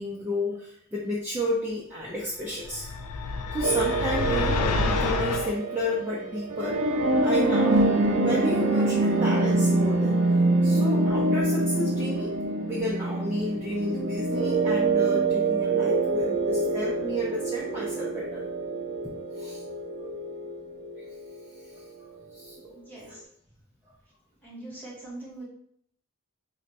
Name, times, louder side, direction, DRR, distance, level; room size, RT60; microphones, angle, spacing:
voice 1, 0.0-2.9 3.5-6.8 7.2-7.8 8.2-10.2 10.6-18.4 19.0-19.6 21.7-21.8 22.3-22.8 23.1-23.2, left 1 dB, 10° right, -6 dB, 0.4 m, -32 dB
sound 1, 2.6-5.5, left 3 dB, 85° left, 0.3 m, -28 dB
sound 2, 3.6-21.3, right 2 dB, 65° right, 0.6 m, -25 dB
voice 2, 22.7-23.2 24.4-25.4, right 2 dB, 10° left, -7 dB, 1.0 m, -42 dB
2.5 x 2.2 x 4.0 m, 0.67 s
head